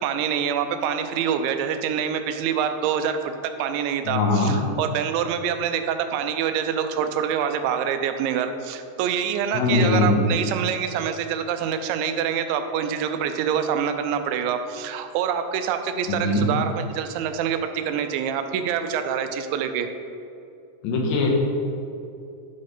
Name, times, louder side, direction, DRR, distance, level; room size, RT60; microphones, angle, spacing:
voice 1, 0.0-19.9, right 8 dB, 90° right, 8 dB, 2.9 m, -26 dB
voice 2, 4.1-4.6 9.5-10.3 16.1-16.5 20.8-21.3, left 2 dB, 90° left, 0 dB, 3.4 m, -21 dB
11.5 x 4.3 x 4.9 m, 2.7 s
omnidirectional pair, 5.1 m